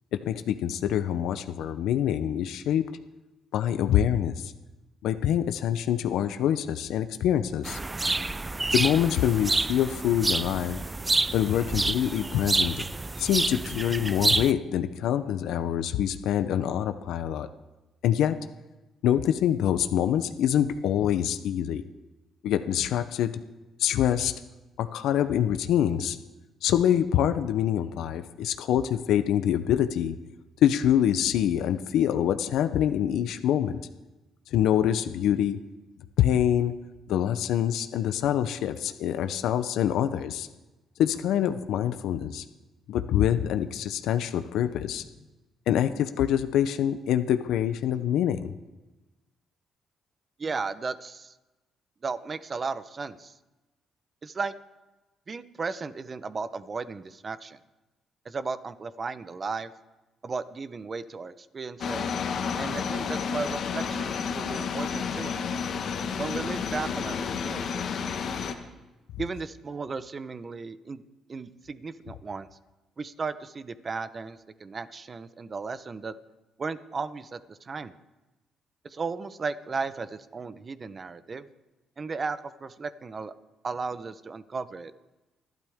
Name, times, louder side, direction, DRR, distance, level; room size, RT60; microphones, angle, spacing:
voice 1, 0.3-2.8 3.5-4.5 5.0-7.8 8.7-10.8 11.3-12.8 13.2-17.5 18.0-18.4 19.0-21.8 22.4-23.3 23.8-24.3 24.8-26.2 26.6-30.1 30.6-33.8 34.5-35.6 36.2-36.7 37.1-40.5 41.0-42.4 42.9-45.0 45.7-48.5, left 10 dB, 85° left, 9 dB, 0.7 m, -25 dB
sound 1, 7.6-14.5, right 2 dB, 20° right, 0.4 m, -28 dB
voice 2, 50.4-51.3 52.0-53.3 54.2-54.5 55.3-57.6 58.2-59.7 60.2-62.1 62.6-65.3 66.2-67.9 69.2-71.0 71.3-72.5 73.0-76.1 76.6-77.9 78.8-81.5 82.0-83.3 83.6-84.9, right 4 dB, 35° right, 13 dB, 0.9 m, -35 dB
sound 2, 61.8-68.5, left 6 dB, 65° left, 1.4 m, -31 dB
28.5 x 12.0 x 3.6 m, 1.1 s
cardioid pair, 90°, 0 cm